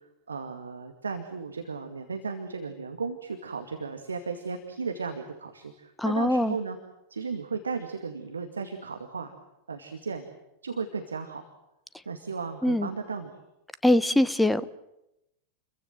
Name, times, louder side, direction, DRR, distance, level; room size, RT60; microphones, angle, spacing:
voice 1, 0.3-6.8 7.1-9.3 9.7-10.3 10.6-11.5 12.1-13.3, right 5 dB, 75° right, 6 dB, 2.2 m, -35 dB
voice 2, 6.0-6.5 12.6-12.9 13.8-14.7, left 1 dB, 5° left, 16 dB, 1.1 m, -22 dB
30.0 x 23.0 x 7.7 m, 0.89 s
figure-of-eight pair, 90°, 0 cm